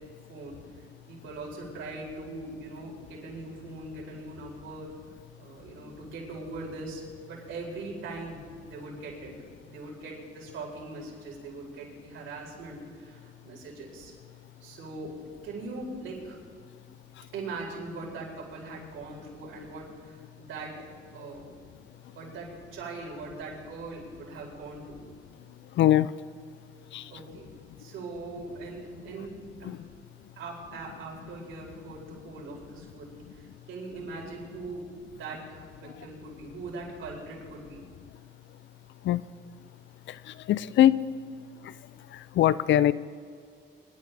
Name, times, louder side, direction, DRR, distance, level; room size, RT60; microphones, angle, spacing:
voice 1, 0.3-4.9 5.4-9.3 9.6-14.1 14.6-15.1 15.4-16.4 17.3-20.7 21.1-21.6 22.1-25.1 27.1-27.5 27.8-29.3 29.6-29.8 30.4-37.9, right 3 dB, 80° right, -2 dB, 4.4 m, -41 dB
voice 2, 25.8-26.1 26.9-27.0 29.7-29.8 39.0-39.2 40.5-41.0 42.4-42.9, left 12 dB, 70° left, 18 dB, 0.5 m, -21 dB
25.0 x 11.5 x 3.4 m, 2.1 s
cardioid pair, 90°, 20 cm